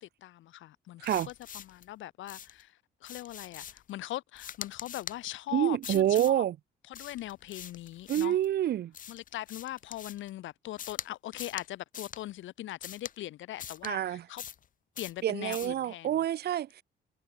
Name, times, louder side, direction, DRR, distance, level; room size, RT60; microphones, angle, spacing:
voice 1, 0.0-6.4 6.9-8.4 9.1-14.4 15.0-16.2, left 14 dB, 85° left, 1.5 m, -41 dB
sound 1, 1.0-1.9 2.3-2.6 3.0-3.9 4.4-5.2 5.8-6.4 6.9-8.5 8.9-10.3 10.8-11.1 11.3-11.7 11.9-12.2 12.8-13.2 13.6-13.9 14.4-14.7 15.0-15.2 15.5-15.8, left 9 dB, 45° left, 4.0 m, -43 dB
voice 2, 5.5-6.5 8.1-8.9 13.8-14.2 15.2-16.8, right 11 dB, 55° right, 1.7 m, -27 dB
cardioid pair, 180°, 19 cm